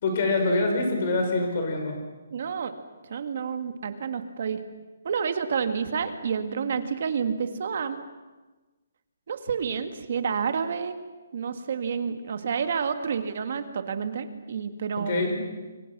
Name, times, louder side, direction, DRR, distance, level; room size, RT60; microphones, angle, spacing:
voice 1, 0.0-2.0 15.1-15.3, left 2 dB, 35° left, 3 dB, 5.4 m, -25 dB
voice 2, 2.3-2.7 3.1-4.6 5.0-8.0 9.3-11.0 11.3-15.3, right 6 dB, 45° right, 9 dB, 1.8 m, -29 dB
29.0 x 23.0 x 6.1 m, 1.2 s
hypercardioid pair, 175°, 0 cm